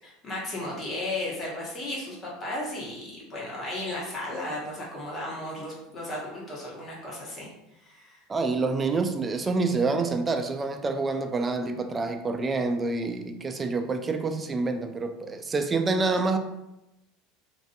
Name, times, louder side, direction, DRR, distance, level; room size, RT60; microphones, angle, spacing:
voice 1, 0.0-7.5 7.8-8.2, left 1 dB, 30° left, -5 dB, 1.0 m, -35 dB
voice 2, 8.3-16.4, right 3 dB, 25° right, 6 dB, 0.3 m, -27 dB
2.5 x 2.3 x 2.5 m, 0.91 s
hypercardioid pair, 90°, 0 cm